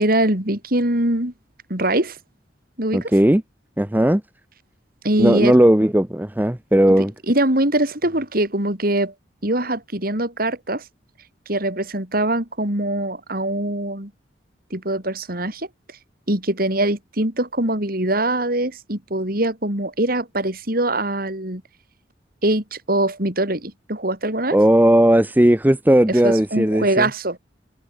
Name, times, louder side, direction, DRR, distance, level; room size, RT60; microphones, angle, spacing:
voice 1, 0.0-1.3 1.7-2.2 2.8-3.1 5.0-5.6 6.9-9.1 9.4-10.8 11.5-14.1 14.7-16.0 16.3-21.6 22.4-24.6 26.1-27.4, right 1 dB, 55° right, 5.5 m, -23 dB
voice 2, 2.9-3.4 3.8-4.2 5.2-7.1 24.5-27.1, right 1 dB, 10° right, 0.8 m, -16 dB
head